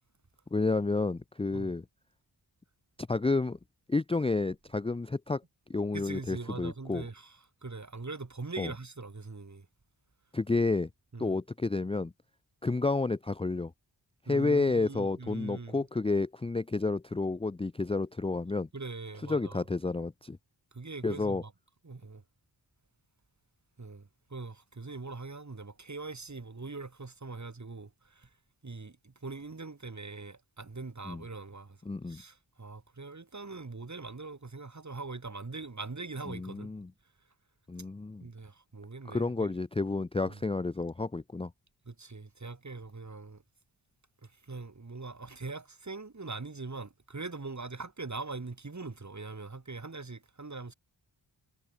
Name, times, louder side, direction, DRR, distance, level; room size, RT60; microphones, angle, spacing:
voice 1, 0.5-1.8 3.1-3.6 3.9-5.4 5.7-7.1 8.6-8.7 10.3-10.9 11.2-12.1 12.6-13.7 14.3-18.7 19.3-20.4 21.0-21.4 31.1-31.2 31.9-32.2 36.3-36.9 37.7-38.3 39.1-41.5, left 3 dB, 15° left, 0.5 m, -30 dB
voice 2, 5.9-9.7 11.1-11.4 14.3-15.9 18.7-19.6 20.7-21.5 21.8-22.2 23.8-28.3 28.6-31.8 32.1-36.7 38.2-39.5 40.3-40.4 41.9-43.4 44.2-50.7, right 3 dB, 35° right, 2.7 m, -42 dB
cardioid pair, 55°, 46 cm